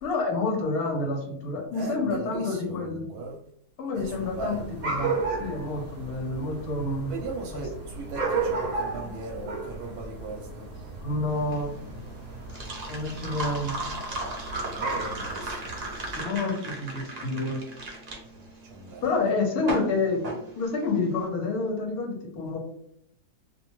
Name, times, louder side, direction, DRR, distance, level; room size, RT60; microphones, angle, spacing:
voice 1, 0.0-3.1 3.8-4.6 4.8-7.2 7.5-7.6 11.0-11.8 12.9-13.7 16.1-17.6 19.0-20.3 20.5-22.6, left 3 dB, 75° left, 2 dB, 1.1 m, -28 dB
voice 2, 1.7-3.4 3.9-4.8 7.1-10.7 14.7-15.7 18.3-19.1, right 3 dB, 75° right, -1 dB, 1.0 m, -38 dB
sound 1, 4.0-16.2, right 3 dB, 50° right, 0.7 m, -34 dB
sound 2, 11.3-21.2, right 2 dB, 90° right, 0.3 m, -36 dB
2.6 x 2.2 x 2.9 m, 0.72 s
omnidirectional pair, 1.7 m